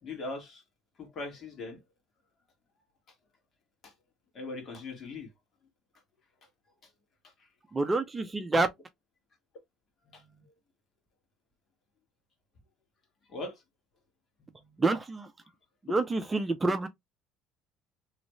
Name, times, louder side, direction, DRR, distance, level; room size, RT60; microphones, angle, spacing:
voice 1, 0.0-0.6 1.0-1.8 3.8-3.9 4.3-5.3 6.8-6.9 7.2-7.5 10.0-10.5 13.3-13.6 14.4-14.8, left 2 dB, 45° left, 1.8 m, -41 dB
voice 2, 7.7-8.7 14.8-15.3 15.9-16.9, right 3 dB, 20° right, 0.6 m, -27 dB
3.2 x 2.5 x 3.1 m
supercardioid pair, 100°, 0 cm